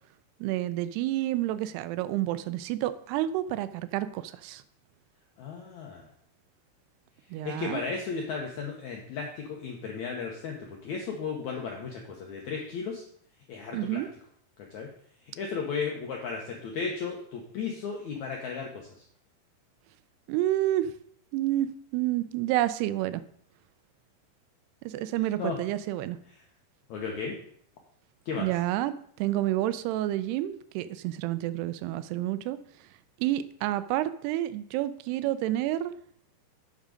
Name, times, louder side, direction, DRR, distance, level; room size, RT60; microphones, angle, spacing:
voice 1, 0.4-4.6 7.3-7.8 13.7-14.1 20.3-20.9 21.3-23.2 24.8-26.2 28.4-32.6 33.2-36.0, right 14 dB, 85° right, 13 dB, 2.6 m, -29 dB
voice 2, 5.4-6.1 7.4-13.0 13.5-14.0 14.7-14.9 15.4-18.9 25.4-25.6 26.9-27.3 28.2-28.5, left 5 dB, 80° left, 0 dB, 1.7 m, -34 dB
8.1 x 6.1 x 5.1 m, 0.63 s
omnidirectional pair, 4.6 m